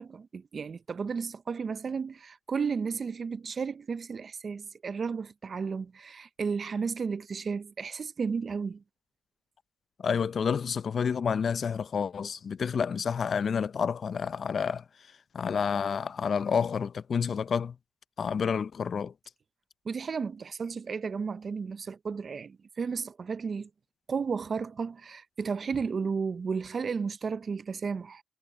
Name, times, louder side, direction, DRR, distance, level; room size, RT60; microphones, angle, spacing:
voice 1, 0.0-8.8 19.9-23.7 24.1-28.2, right 5 dB, 40° right, 0.5 m, -33 dB
voice 2, 10.0-14.8 15.3-17.8 18.2-19.1, left 6 dB, 45° left, 0.5 m, -29 dB
cardioid pair, 90°, 0 cm